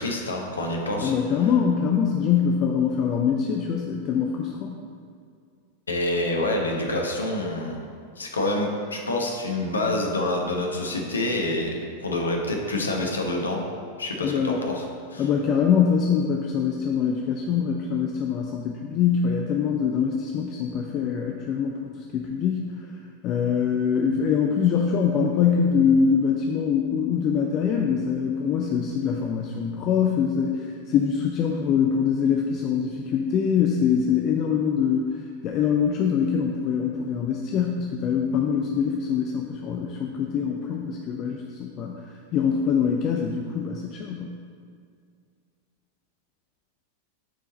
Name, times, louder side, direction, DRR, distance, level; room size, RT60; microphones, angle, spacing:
voice 1, 0.0-1.1 5.9-7.9 8.2-13.6 14.0-14.8 15.1-15.3, left 1 dB, 75° left, 1 dB, 0.9 m, -27 dB
voice 2, 1.0-4.8 14.2-14.6 15.2-22.6 23.2-44.3, left 7 dB, 35° left, 1 dB, 0.5 m, -24 dB
9.0 x 4.6 x 4.1 m, 2.2 s
figure-of-eight pair, 90°, 0 cm